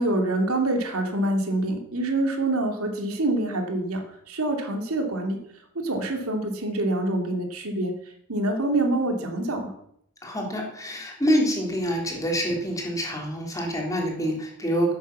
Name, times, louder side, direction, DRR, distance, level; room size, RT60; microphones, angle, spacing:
voice 1, 0.0-5.4 5.7-7.9 8.3-9.7, right 2 dB, 90° right, 3 dB, 2.6 m, -26 dB
voice 2, 10.2-14.9, equal, 15° left, -1 dB, 3.5 m, -26 dB
12.0 x 9.1 x 7.3 m, 0.71 s
head